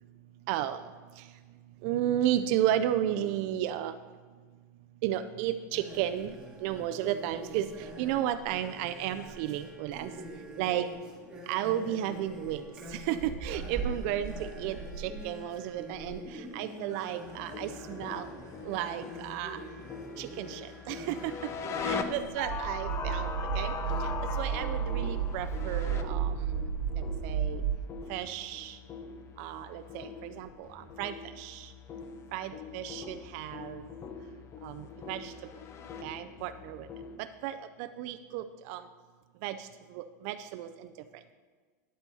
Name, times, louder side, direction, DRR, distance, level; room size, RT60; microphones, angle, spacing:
voice 1, 0.5-0.8 1.2-1.3 1.8-4.0 5.0-10.1 10.6-10.9 11.5-12.6 12.9-18.3 18.6-19.6 20.2-21.3 21.8-23.3 23.5-23.7 24.0-24.1 24.4-26.7 27.2-27.6 28.1-28.8 29.4-31.7 32.3-33.8 34.6-35.3 36.0-36.9 37.2-38.8 39.4-40.9, right 11 dB, 55° right, 10 dB, 0.3 m, -33 dB
sound 1, 5.7-22.3, right 2 dB, 10° right, 1.6 m, -43 dB
sound 2, 17.2-37.2, left 6 dB, 30° left, 0.5 m, -41 dB
sound 3, 22.4-27.7, right 7 dB, 85° right, 1.2 m, -32 dB
10.0 x 8.1 x 2.7 m, 1.5 s
supercardioid pair, 135°, 10 cm